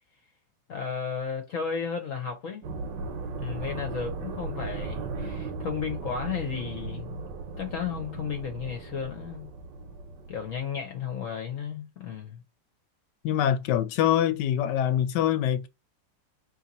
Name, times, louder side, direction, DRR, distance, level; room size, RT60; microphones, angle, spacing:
voice 1, 0.7-2.6 3.4-7.3 7.6-9.5 10.3-12.4, left 6 dB, 60° left, 1.0 m, -34 dB
sound 1, 2.6-10.9, right 3 dB, 80° right, 1.3 m, -37 dB
voice 2, 13.2-15.7, left 10 dB, 80° left, 1.2 m, -24 dB
2.9 x 2.8 x 3.8 m
omnidirectional pair, 1.9 m